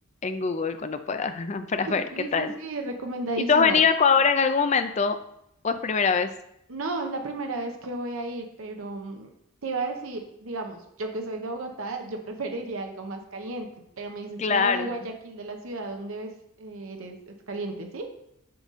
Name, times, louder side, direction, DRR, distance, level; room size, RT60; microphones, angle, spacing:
voice 1, 0.2-2.0 2.3-2.5 3.5-5.2 5.6-6.3 14.4-14.9, left 5 dB, 35° left, 9 dB, 0.4 m, -23 dB
voice 2, 1.8-3.8 6.7-9.3 9.6-13.7 14.0-16.3 16.6-18.1, right 2 dB, 80° right, 3 dB, 0.8 m, -33 dB
6.8 x 4.1 x 3.7 m, 0.76 s
head